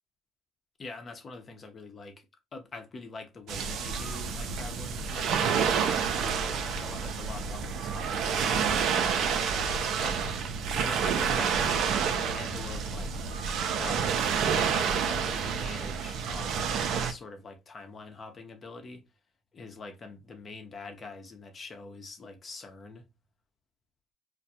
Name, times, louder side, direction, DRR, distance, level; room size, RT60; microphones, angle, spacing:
voice 1, 0.8-2.3 2.5-5.7 6.2-9.6 10.0-10.2 10.7-11.8 12.1-13.2 13.8-14.1 14.4-16.6 16.9-19.0 19.5-23.0, left 3 dB, 40° left, 0.7 m, -44 dB
sound 1, 3.5-17.1, right 6 dB, 70° right, 0.4 m, -29 dB
2.4 x 2.2 x 2.8 m
supercardioid pair, 70°, 0 cm